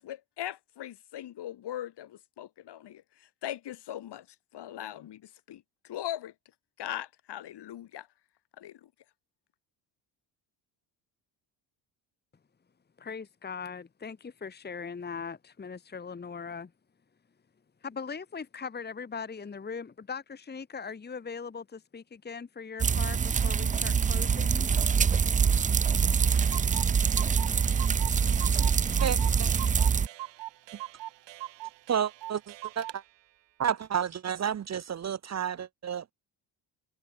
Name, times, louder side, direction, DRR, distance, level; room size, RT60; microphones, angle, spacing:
voice 1, 0.0-4.3 4.5-6.3 6.8-8.1 8.6-8.9, left 12 dB, 65° left, 4.8 m, -40 dB
voice 2, 13.0-16.7 17.8-24.7, left 5 dB, 20° left, 1.4 m, -40 dB
sound 1, 22.8-30.1, right 6 dB, 20° right, 0.4 m, -25 dB
Clock, 25.8-25.9 26.1-26.2 26.3-33.0, right 15 dB, 75° right, 1.9 m, -42 dB
voice 3, 29.0-29.5 31.9-32.4 32.8-33.0 33.6-36.1, right 8 dB, 35° right, 0.8 m, -31 dB
cardioid pair, 100°, 44 cm